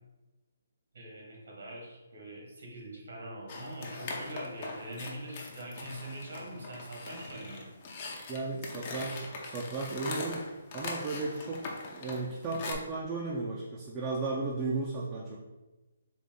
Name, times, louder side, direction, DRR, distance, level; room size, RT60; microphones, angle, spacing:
voice 1, 0.9-7.7, right 1 dB, 75° right, -1 dB, 1.3 m, -43 dB
sound 1, 3.5-12.7, left 3 dB, 35° left, 0.6 m, -41 dB
voice 2, 8.3-10.5 10.7-11.6 11.9-15.4, right 3 dB, 20° right, -4 dB, 0.4 m, -35 dB
3.9 x 2.5 x 3.6 m, 1.1 s
hypercardioid pair, 155°, 0 cm